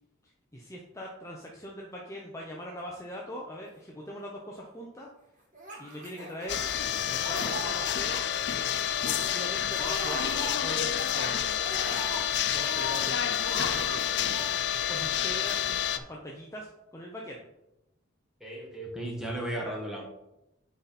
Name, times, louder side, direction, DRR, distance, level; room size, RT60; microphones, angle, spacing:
voice 1, 0.5-5.1 5.8-6.6 7.1-8.2 9.0-11.5 12.1-12.2 12.5-14.2 14.9-15.7 15.9-17.4 19.6-19.7, equal, 15° left, -2 dB, 0.7 m, -41 dB
Laughter, 5.5-6.9 7.2-8.2 8.6-8.7 9.0-9.3 9.7-11.1 11.5-13.1 13.4-14.0 14.2-14.5, equal, 40° right, 2.4 m, -39 dB
sound 1, 6.5-16.0, left 9 dB, 60° left, 0.4 m, -29 dB
voice 2, 18.4-20.1, right 1 dB, 5° right, -2 dB, 1.5 m, -35 dB
9.3 x 4.1 x 4.1 m, 0.89 s
head